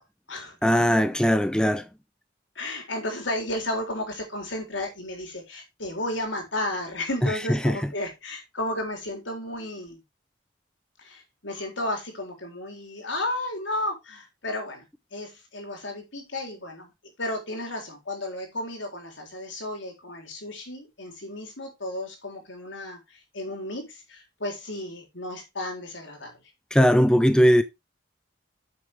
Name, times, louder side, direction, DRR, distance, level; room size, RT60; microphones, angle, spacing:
voice 1, 0.6-1.8 7.5-7.8 26.7-27.6, equal, 5° left, 0.5 m, -19 dB
voice 2, 2.6-10.0 11.0-14.8 15.1-16.9 17.2-26.4, left 1 dB, 75° left, 3.8 m, -33 dB
8.9 x 7.0 x 3.6 m
head